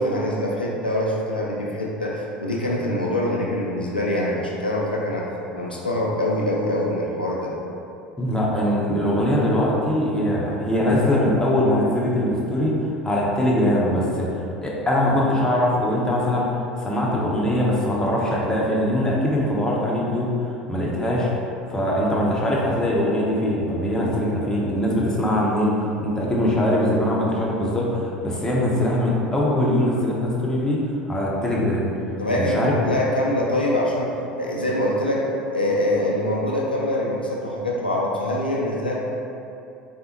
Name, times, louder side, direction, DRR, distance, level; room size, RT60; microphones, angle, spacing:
voice 1, 0.0-5.2 5.5-7.5 32.2-34.1 34.4-35.3 35.5-39.0, left 1 dB, 90° left, -4 dB, 0.3 m, -24 dB
voice 2, 8.2-21.3 21.7-31.9 32.3-32.7, left 1 dB, 10° left, -4 dB, 0.6 m, -22 dB
3.3 x 2.0 x 2.8 m, 2.7 s
figure-of-eight pair, 70°, 5 cm